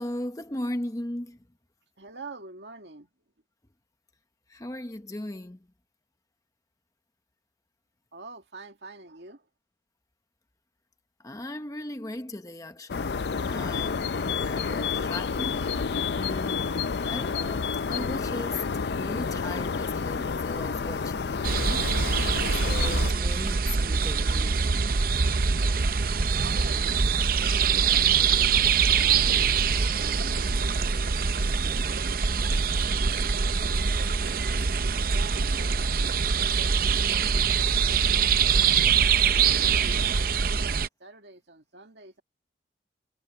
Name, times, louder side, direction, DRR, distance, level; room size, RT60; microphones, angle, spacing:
voice 1, 0.0-1.4 4.5-5.7 11.2-18.7 18.9-22.2 22.6-24.7, left 1 dB, 20° left, 0.8 m, -38 dB
voice 2, 2.0-3.1 8.1-9.4 26.3-29.4 29.8-31.1 31.4-34.4 35.1-38.6 39.0-42.2, right 3 dB, 75° right, 2.2 m, -47 dB
sound 1, 12.9-23.1, left 5 dB, 65° left, 0.5 m, -29 dB
sound 2, 21.4-40.9, right 6 dB, 50° right, 0.6 m, -24 dB
head